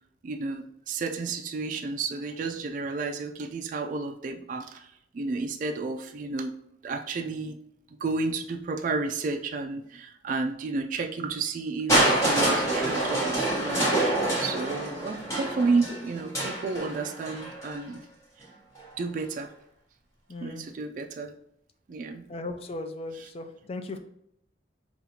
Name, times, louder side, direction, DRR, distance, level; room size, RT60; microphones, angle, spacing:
voice 1, 0.2-4.9 5.1-6.5 6.8-7.6 8.0-13.9 14.4-18.0 19.0-19.5 20.4-21.3 21.9-22.3 23.1-23.3, right 3 dB, 45° right, 4 dB, 0.3 m, -31 dB
Crushing, 11.9-17.8 18.8-18.9, right 1 dB, 15° left, 1.2 m, -26 dB
voice 2, 20.3-20.6 22.3-24.0, left 2 dB, 35° left, 7 dB, 0.4 m, -37 dB
5.3 x 2.4 x 2.8 m, 0.75 s
head